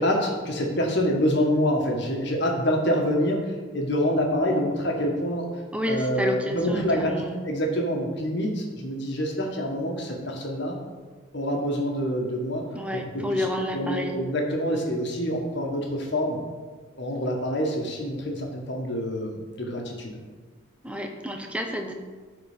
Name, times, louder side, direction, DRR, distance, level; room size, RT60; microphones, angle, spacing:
voice 1, 0.0-3.5 3.7-5.5 5.9-7.1 7.4-10.7 11.3-12.6 13.1-13.4 13.7-16.4 16.9-20.2, equal, 55° left, 0 dB, 1.6 m, -26 dB
voice 2, 5.7-7.4 12.7-14.2 20.8-21.9, left 1 dB, 5° right, 4 dB, 0.7 m, -30 dB
12.0 x 4.4 x 5.2 m, 1.4 s
head